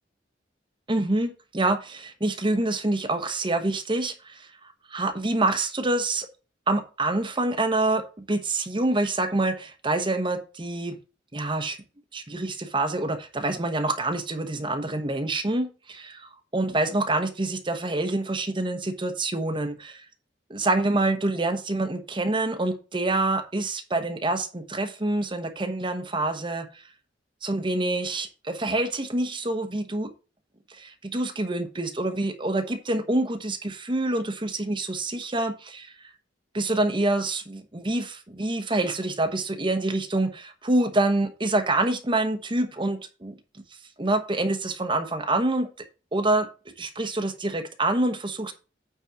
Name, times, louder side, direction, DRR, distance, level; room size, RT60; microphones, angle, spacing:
voice 1, 0.9-6.3 6.7-11.0 11.3-11.8 12.1-20.1 20.5-26.8 27.4-30.1 30.7-35.9 36.5-43.3 44.0-45.7 46.1-46.5 46.8-48.5, right 2 dB, 25° right, 7 dB, 1.0 m, -26 dB
9.3 x 4.0 x 5.8 m, 0.33 s
head